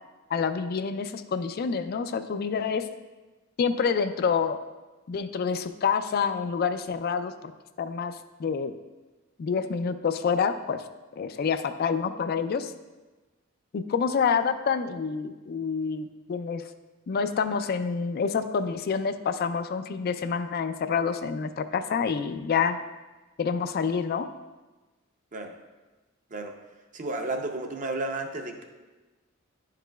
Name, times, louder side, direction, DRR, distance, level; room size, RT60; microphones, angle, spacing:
voice 1, 0.3-2.9 3.6-4.6 5.1-7.5 7.8-8.7 9.4-10.8 11.2-12.7 13.7-16.6 17.1-22.8 23.4-24.3, left 6 dB, 50° left, 10 dB, 0.3 m, -27 dB
voice 2, 26.9-28.6, right 2 dB, 40° right, 4 dB, 0.6 m, -32 dB
10.5 x 4.9 x 2.3 m, 1.2 s
head